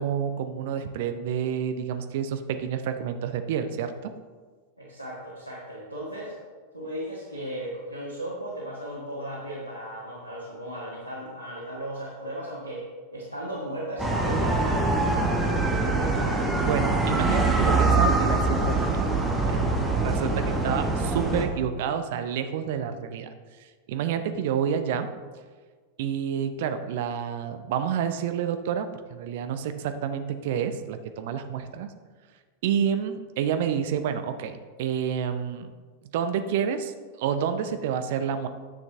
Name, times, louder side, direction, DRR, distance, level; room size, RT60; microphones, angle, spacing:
voice 1, 0.0-4.1 16.6-19.0 19.3-19.6 20.0-23.3 23.9-25.1 26.0-31.9 32.6-35.7 36.1-38.5, right 8 dB, 50° right, 9 dB, 0.6 m, -29 dB
voice 2, 4.8-6.3 6.7-12.9 13.1-16.4, right 1 dB, 85° left, -5 dB, 1.6 m, -36 dB
sound 1, 14.0-21.4, right 3 dB, 5° right, 1.2 m, -24 dB
10.0 x 6.5 x 3.5 m, 1.5 s
figure-of-eight pair, 90°, 0 cm